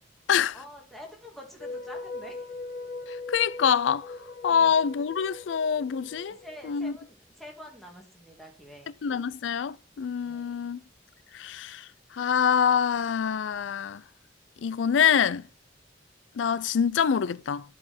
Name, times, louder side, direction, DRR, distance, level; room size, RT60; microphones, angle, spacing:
voice 1, 0.5-2.6 4.5-4.8 6.3-8.9 10.2-10.7, left 1 dB, ahead, 2.1 m, -47 dB
sound 1, 1.6-6.8, left 3 dB, 60° left, 1.5 m, -40 dB
voice 2, 3.3-4.1 4.4-6.4 6.6-6.9 9.0-10.8 11.3-11.8 12.1-14.0 14.6-15.4 16.4-17.6, left 7 dB, 90° left, 0.4 m, -25 dB
11.5 x 4.8 x 4.2 m
head